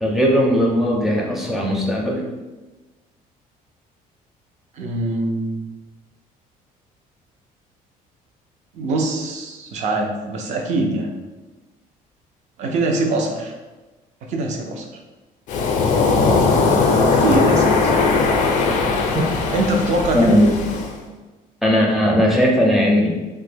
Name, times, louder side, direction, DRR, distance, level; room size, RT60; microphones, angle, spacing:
voice 1, 0.0-2.3 19.1-19.2 20.1-20.6 21.6-23.1, equal, ahead, -3 dB, 0.5 m, -17 dB
voice 2, 4.7-5.6 8.7-11.1 12.6-13.5 14.2-14.9 17.1-17.9 19.5-20.4, right 2 dB, 50° right, 2 dB, 0.5 m, -23 dB
Waves surf, 15.5-20.9, left 4 dB, 55° left, 0.4 m, -18 dB
3.2 x 2.1 x 3.3 m, 1.2 s
cardioid pair, 165°, 15 cm